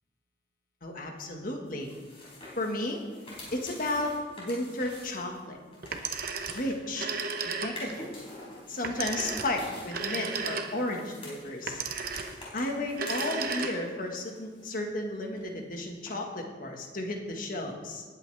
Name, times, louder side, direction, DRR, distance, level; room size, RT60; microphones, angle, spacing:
voice 1, 0.8-1.9 2.6-3.0 3.5-5.6 6.5-7.1 7.4-8.1 8.7-11.8 12.5-18.0, left 1 dB, 50° left, 2 dB, 1.7 m, -33 dB
sound 1, 1.7-7.2 7.6-13.9 14.2-15.1 15.3-15.4 16.1-16.2, left 1 dB, 30° left, 4.1 m, -47 dB
Telephone, 5.8-8.0 8.8-11.0 11.7-12.5 12.9-14.1, right 5 dB, 50° right, 0.9 m, -34 dB
19.0 x 8.7 x 3.5 m, 1.4 s
head